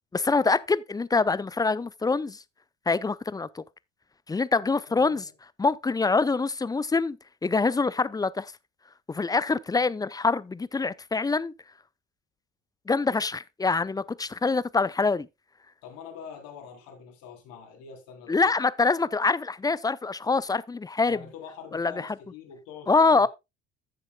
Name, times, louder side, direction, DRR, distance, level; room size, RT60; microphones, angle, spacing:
voice 1, 0.1-2.4 2.9-3.6 4.3-5.3 5.6-7.2 7.4-8.5 9.1-11.5 12.9-15.3 18.3-21.2 21.7-22.1 22.9-23.3, left 4 dB, 10° left, 0.5 m, -25 dB
voice 2, 4.7-5.3 15.8-18.5 21.1-23.3, left 7 dB, 65° left, 3.6 m, -45 dB
14.5 x 7.4 x 2.2 m
hypercardioid pair, 65°, 36 cm